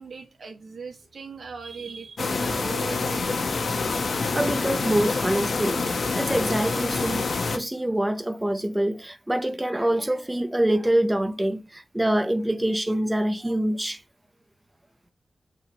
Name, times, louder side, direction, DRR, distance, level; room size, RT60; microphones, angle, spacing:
voice 1, 0.0-3.5, right 5 dB, 75° right, 1.7 m, -39 dB
sound 1, 2.2-7.6, left 4 dB, 70° left, 1.1 m, -26 dB
voice 2, 4.3-5.8 6.1-14.0, right 1 dB, 10° right, 0.6 m, -25 dB
6.2 x 3.5 x 4.3 m
wide cardioid pair, 75°, 0 cm